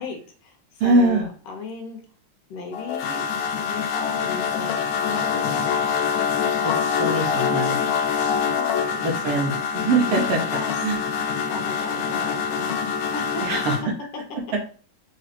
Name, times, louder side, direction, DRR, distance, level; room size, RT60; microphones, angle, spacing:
voice 1, 0.0-2.0 2.5-3.3 3.6-5.8 8.5-9.5 10.5-10.7 11.4-13.4, left 3 dB, 65° left, 2 dB, 1.7 m, -36 dB
voice 2, 0.8-1.3 6.6-6.7 7.0-7.8 9.0-10.4 10.8-11.0 13.4-13.8, right 2 dB, 75° right, 0 dB, 1.4 m, -22 dB
sound 1, 2.7-13.8, left 7 dB, 80° left, 1.5 m, -25 dB
4.6 x 3.1 x 2.9 m, 0.41 s
omnidirectional pair, 3.6 m